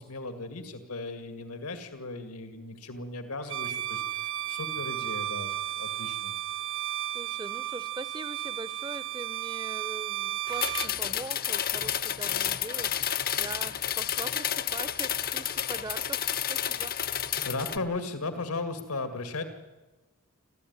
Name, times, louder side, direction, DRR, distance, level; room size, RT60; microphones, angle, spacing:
voice 1, 0.0-6.3 17.4-19.4, left 3 dB, 85° left, 8 dB, 2.2 m, -36 dB
Bowed string instrument, 3.4-10.9, right 13 dB, 60° right, 0.9 m, -34 dB
voice 2, 7.1-17.0, right 2 dB, 20° right, 16 dB, 0.7 m, -42 dB
sound 1, 10.5-17.8, left 10 dB, 40° left, 0.7 m, -30 dB
25.5 x 14.5 x 9.6 m, 1.2 s
head